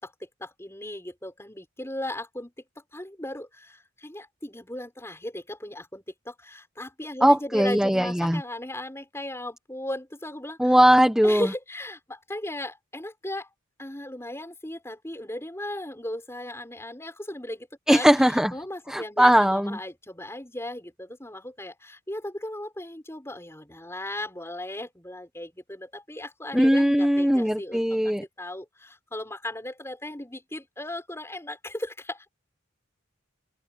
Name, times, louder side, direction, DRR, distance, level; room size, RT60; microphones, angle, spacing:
voice 1, 0.0-2.5 2.9-10.8 11.2-13.5 13.8-32.3, left 1 dB, 15° left, 5.6 m, -37 dB
voice 2, 7.2-8.4 10.6-11.5 17.9-18.5 18.9-19.8 26.5-28.2, equal, 5° right, 1.4 m, -20 dB
open air
head